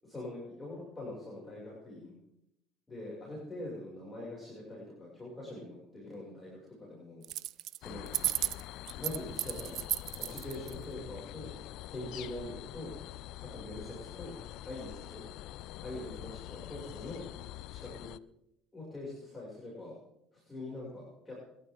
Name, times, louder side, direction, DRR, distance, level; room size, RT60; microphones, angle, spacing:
voice 1, 0.0-2.1 2.9-7.2 7.8-8.1 8.9-9.9 10.2-11.5 11.9-13.0 13.4-14.4 14.6-15.2 15.8-17.3 17.7-18.1 18.7-20.0 20.3-21.4, left 1 dB, 15° left, -5 dB, 7.2 m, -43 dB
sound 1, 7.2-7.8 8.1-10.7, right 15 dB, 60° right, 0.6 m, -33 dB
sound 2, 7.8-18.2, left 15 dB, 65° left, 0.5 m, -45 dB
27.5 x 12.0 x 4.0 m, 0.82 s
supercardioid pair, 100°, 0 cm